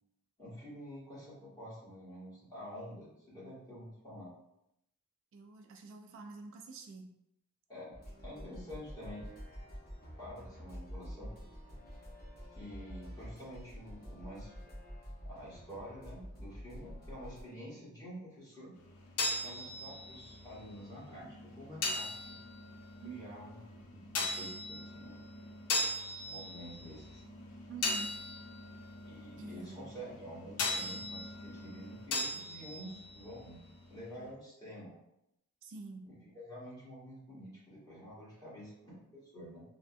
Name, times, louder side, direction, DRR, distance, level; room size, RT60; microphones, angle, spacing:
voice 1, 0.4-4.3 7.7-7.9 8.2-9.3 10.2-11.3 12.5-14.6 15.2-18.7 19.4-22.4 23.0-25.3 26.2-27.2 29.0-33.6 33.9-35.0 36.1-39.6, equal, 15° left, -9 dB, 1.3 m, -48 dB
voice 2, 5.3-7.1 23.0-23.4 27.7-28.1 29.4-30.0 35.6-36.1, right 4 dB, 60° right, 3 dB, 0.3 m, -47 dB
sound 1, 7.9-17.4, equal, 45° left, 0.9 m, -48 dB
sound 2, 18.7-34.3, left 2 dB, 85° left, 0.6 m, -39 dB
3.4 x 2.1 x 2.6 m, 0.82 s
head